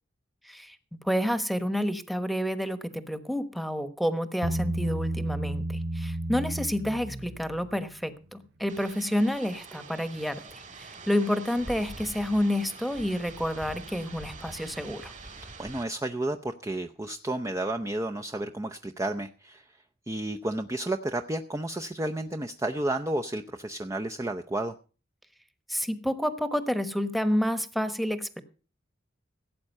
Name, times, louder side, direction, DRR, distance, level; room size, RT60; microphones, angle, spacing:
voice 1, 1.0-10.3 10.8-15.1 25.7-28.4, equal, ahead, 10 dB, 1.1 m, -29 dB
Bass guitar, 4.4-7.8, right 1 dB, 60° right, 1.3 m, -32 dB
sound 1, 8.7-15.8, right 3 dB, 40° right, 3.2 m, -44 dB
voice 2, 15.4-24.7, right 1 dB, 15° right, 5 dB, 0.6 m, -32 dB
16.5 x 8.7 x 5.4 m, 0.36 s
head